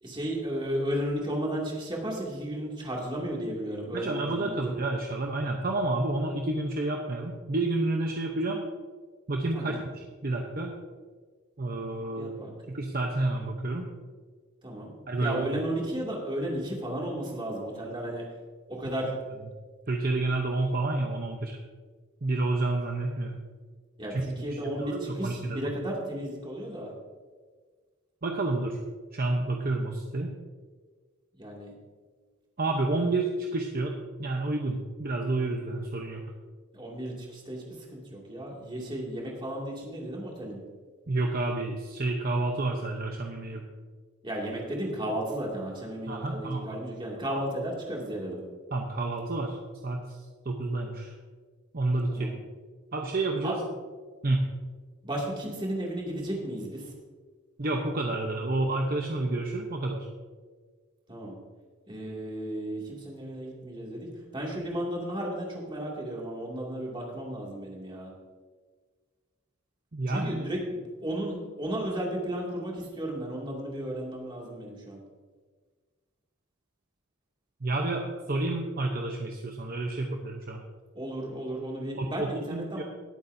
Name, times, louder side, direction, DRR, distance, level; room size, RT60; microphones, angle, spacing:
voice 1, 0.0-4.8 9.5-9.8 12.2-12.5 14.6-14.9 15.2-18.2 18.7-19.2 24.0-26.9 31.4-31.7 36.7-37.6 37.9-40.6 44.2-48.4 52.1-52.4 53.4-53.6 55.0-56.9 61.1-61.3 61.9-64.1 64.3-68.1 70.1-75.0 80.9-82.8, right 1 dB, 20° right, -3 dB, 2.4 m, -34 dB
voice 2, 3.9-8.6 9.3-10.7 11.6-12.4 12.7-13.9 15.1-15.5 19.9-21.6 22.2-23.4 24.1-25.7 28.2-28.8 29.1-30.3 32.6-36.2 41.1-43.6 46.1-46.8 47.2-47.4 48.7-49.6 49.8-50.2 50.4-51.1 51.7-52.3 52.9-53.6 54.2-54.4 57.6-60.1 69.9-70.4 77.6-80.6 82.0-82.8, right 2 dB, 40° right, 2 dB, 0.8 m, -29 dB
19.5 x 8.6 x 2.7 m, 1.5 s
head